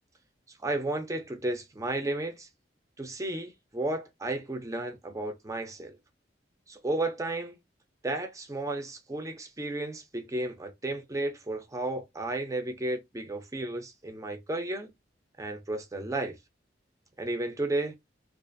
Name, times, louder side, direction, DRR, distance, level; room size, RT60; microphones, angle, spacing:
voice 1, 0.6-2.5 3.0-6.0 6.7-7.6 8.0-14.9 15.4-16.3 17.2-17.9, right 2 dB, 15° right, 0.5 m, -33 dB
2.4 x 2.4 x 2.5 m
head